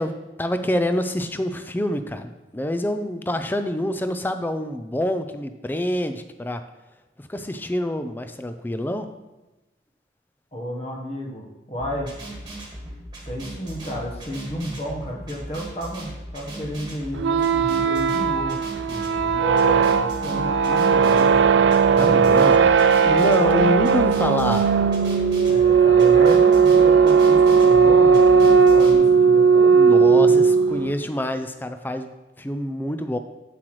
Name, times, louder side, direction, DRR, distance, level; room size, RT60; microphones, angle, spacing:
voice 1, 0.0-6.6 7.2-9.1 18.9-19.4 22.0-22.7 23.1-24.7 29.7-33.2, left 1 dB, 10° left, 9 dB, 0.3 m, -26 dB
voice 2, 10.5-12.1 13.3-18.6 19.4-22.7 23.4-23.6 25.5-29.7 30.1-30.4, equal, 35° left, -1 dB, 1.1 m, -32 dB
sound 1, 11.8-28.9, right 1 dB, 20° right, 1.5 m, -38 dB
sound 2, 17.2-30.9, right 6 dB, 85° right, 0.3 m, -17 dB
7.8 x 7.6 x 3.1 m, 1.1 s
head